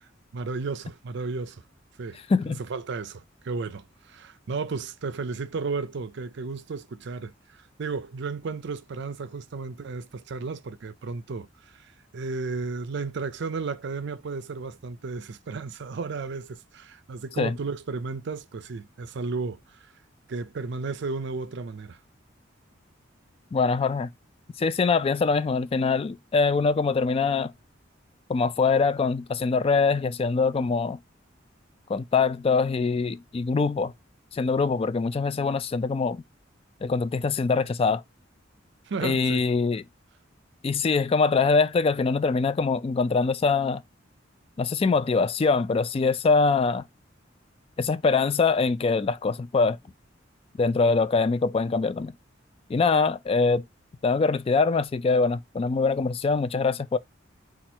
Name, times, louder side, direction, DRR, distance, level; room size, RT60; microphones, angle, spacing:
voice 1, 0.3-1.6 2.0-2.2 2.6-19.9 20.3-22.0 38.9-39.5, right 4 dB, 65° right, 0.5 m, -33 dB
voice 2, 23.5-24.1 24.6-27.5 28.3-31.0 31.9-33.9 34.3-36.2 36.8-38.0 39.0-39.8 40.6-43.8 44.6-46.8 47.8-49.8 50.6-52.1 52.7-53.6 54.0-57.0, left 4 dB, 30° left, 0.3 m, -23 dB
4.4 x 2.4 x 4.3 m
head